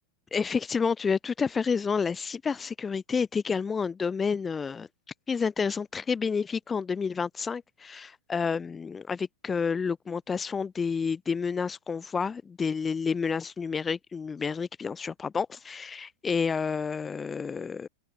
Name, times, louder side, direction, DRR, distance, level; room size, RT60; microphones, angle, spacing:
voice 1, 0.3-4.9 5.3-17.9, left 5 dB, 15° left, 2.1 m, -29 dB
open air
figure-of-eight pair, 90°, 0 cm